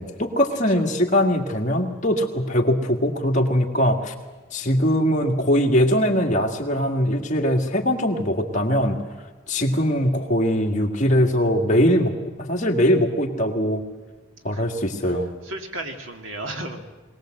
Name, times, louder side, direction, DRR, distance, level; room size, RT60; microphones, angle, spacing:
voice 1, 0.0-4.1 4.5-9.0 9.5-13.8 14.4-15.3, equal, 40° left, 2 dB, 2.0 m, -21 dB
voice 2, 15.4-17.0, right 1 dB, 85° right, 4 dB, 2.4 m, -34 dB
22.0 x 18.5 x 7.8 m, 1.3 s
head